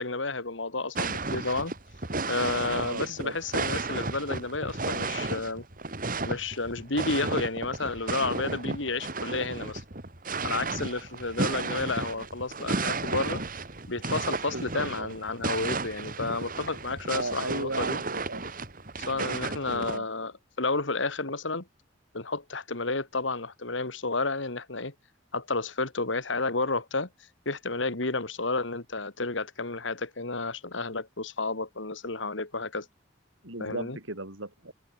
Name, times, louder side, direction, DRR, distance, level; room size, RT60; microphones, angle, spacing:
voice 1, 0.0-1.7 2.3-5.6 6.2-9.8 10.4-13.4 13.9-18.0 19.0-20.3 20.6-21.7 22.1-24.9 25.3-27.1 27.5-32.9 33.6-34.0, left 3 dB, 75° left, 2.4 m, -31 dB
sound 1, 0.9-20.0, right 3 dB, 45° right, 2.7 m, -33 dB
voice 2, 2.8-3.4 14.5-15.1 17.1-18.4 19.1-20.1 33.4-34.7, right 2 dB, 90° right, 7.5 m, -37 dB
head